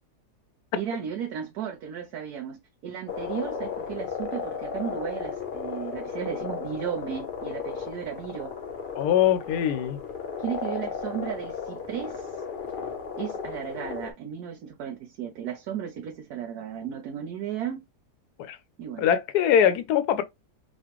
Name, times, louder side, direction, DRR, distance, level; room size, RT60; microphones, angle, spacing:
voice 1, 0.7-8.5 10.4-12.3 13.2-17.8 18.8-19.1, right 9 dB, 75° right, 1.2 m, -35 dB
sound 1, 3.1-14.1, left 6 dB, 45° left, 0.6 m, -35 dB
voice 2, 8.9-10.0 18.4-18.6 19.0-20.2, left 9 dB, 75° left, 1.2 m, -22 dB
4.2 x 2.5 x 3.0 m
omnidirectional pair, 1.7 m